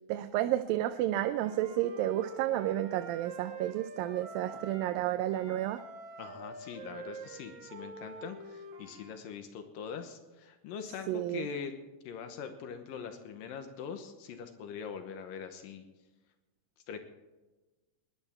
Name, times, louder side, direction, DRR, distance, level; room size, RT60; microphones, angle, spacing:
voice 1, 0.1-5.8 11.1-11.5, right 13 dB, 90° right, 9 dB, 2.4 m, -31 dB
Wind instrument woodwind instrument, 1.2-5.0 5.3-9.2, right 3 dB, 60° right, 3.1 m, -46 dB
voice 2, 6.2-11.7 12.0-15.8 16.9-17.0, left 6 dB, 80° left, 7 dB, 2.7 m, -42 dB
21.5 x 10.5 x 4.4 m, 1.2 s
omnidirectional pair, 4.0 m